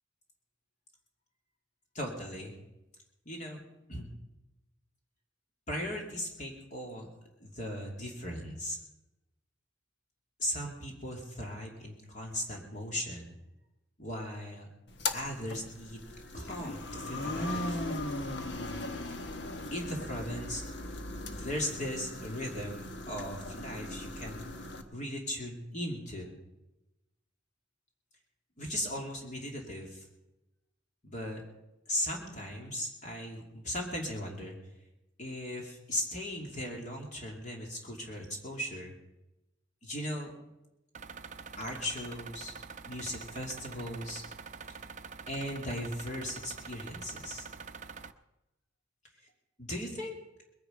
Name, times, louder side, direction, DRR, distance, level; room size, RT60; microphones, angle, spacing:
voice 1, 1.9-2.5 3.2-3.6 3.9-4.1 5.7-7.1 7.4-8.8 10.4-13.3 14.0-14.7 15.1-16.1 16.3-17.8 19.7-20.6 21.3-24.4 24.9-26.3 28.6-30.0 31.0-31.4 31.9-34.5 35.2-38.9 39.8-40.3 41.6-42.5 42.9-44.2 45.3-47.5 49.6-50.2, left 1 dB, 40° left, -1 dB, 2.8 m, -38 dB
sound 1, 14.9-24.8, left 2 dB, 60° left, 1.3 m, -38 dB
sound 2, 40.9-48.1, right 5 dB, 40° right, 0.6 m, -46 dB
21.5 x 10.0 x 5.2 m, 0.97 s
head